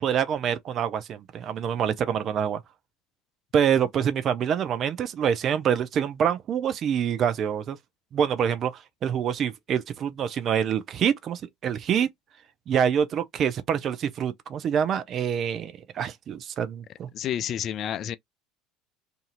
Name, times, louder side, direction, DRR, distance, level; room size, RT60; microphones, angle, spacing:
voice 1, 0.0-2.6 3.5-7.8 8.1-12.1 12.7-17.1, right 8 dB, 45° right, 0.6 m, -26 dB
voice 2, 17.1-18.2, left 10 dB, 50° left, 0.3 m, -29 dB
2.7 x 2.6 x 2.5 m
hypercardioid pair, 70°, 0 cm